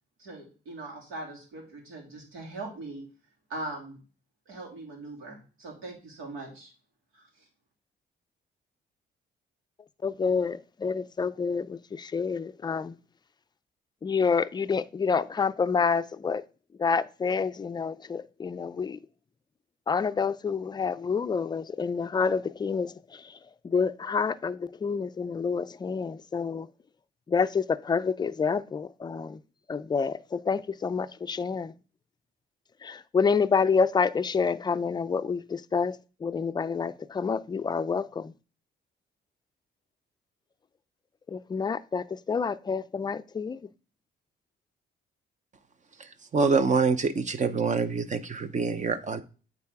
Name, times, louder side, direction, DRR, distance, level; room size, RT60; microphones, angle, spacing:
voice 1, 0.2-3.0 3.5-4.0 4.5-6.7 7.1-7.3, right 2 dB, 90° right, 2.9 m, -40 dB
voice 2, 10.0-12.9 14.0-16.4 16.8-19.0 19.9-23.2 23.6-26.7 27.3-29.4 29.7-31.7 32.8-38.3 41.3-43.6, left 5 dB, 20° left, 0.4 m, -28 dB
voice 3, 46.3-49.2, right 4 dB, 35° right, 0.7 m, -25 dB
8.7 x 4.1 x 3.5 m
cardioid pair, 90°, 20 cm